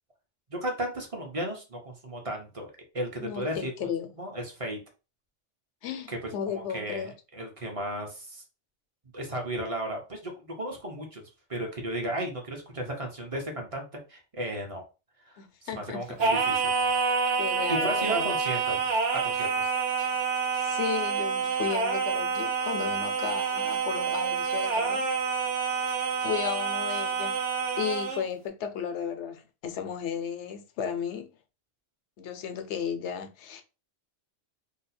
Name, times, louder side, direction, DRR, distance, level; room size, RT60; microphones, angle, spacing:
voice 1, 0.5-3.9 4.2-4.8 6.1-6.2 6.5-8.4 9.1-11.2 11.5-14.8 15.3-15.4 15.6-16.7 17.7-19.7, right 1 dB, 35° right, 0.8 m, -34 dB
voice 2, 3.2-4.1 5.8-7.1 15.4-16.2 17.4-18.3 20.6-25.1 26.2-27.4 27.8-31.3 32.2-33.6, left 8 dB, 75° left, 0.9 m, -34 dB
Singing, 16.2-28.3, right 5 dB, 90° right, 1.2 m, -28 dB
2.8 x 2.2 x 4.1 m
omnidirectional pair, 1.2 m